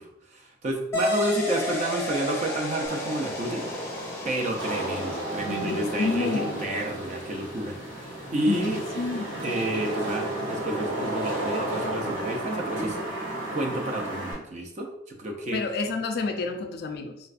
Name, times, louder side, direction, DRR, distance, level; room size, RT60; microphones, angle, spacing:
voice 1, 0.0-4.0 4.2-8.8 9.4-13.0 13.5-14.9 15.2-15.6, right 1 dB, 35° right, 2 dB, 0.4 m, -30 dB
sound 1, 0.9-9.9, left 1 dB, 15° left, 0.6 m, -34 dB
Wind / Rain, 2.8-14.3, right 1 dB, 90° right, 1.2 m, -33 dB
voice 2, 5.4-6.7 8.3-9.5 15.5-17.2, left 3 dB, 50° left, 6 dB, 0.3 m, -30 dB
4.0 x 2.2 x 2.4 m, 0.82 s
head